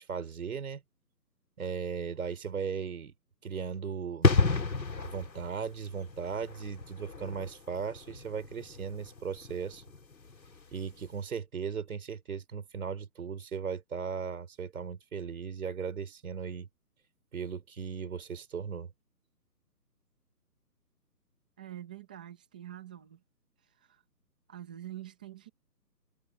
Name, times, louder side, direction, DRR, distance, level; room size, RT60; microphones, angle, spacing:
voice 1, 0.1-0.8 1.6-3.1 3.4-4.3 5.0-9.8 10.7-16.7 17.3-18.9, right 6 dB, 55° right, 5.0 m, -37 dB
sound 1, 4.2-10.7 11.0-11.2, left 4 dB, 85° left, 4.1 m, -31 dB
voice 2, 21.6-23.2 23.8-24.0 24.5-25.5, right 12 dB, 5° right, 0.8 m, -45 dB
hypercardioid pair, 160°, 50 cm